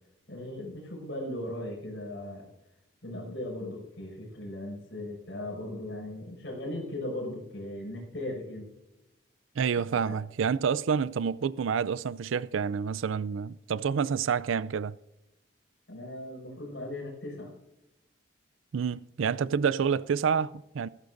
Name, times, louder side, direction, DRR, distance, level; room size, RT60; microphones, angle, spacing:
voice 1, 0.3-2.5 3.0-8.7 10.1-10.2 15.9-17.5, left 1 dB, 65° left, 5.8 m, -38 dB
voice 2, 9.6-15.0 18.7-20.9, right 6 dB, 85° right, 0.4 m, -28 dB
17.0 x 14.5 x 2.6 m
head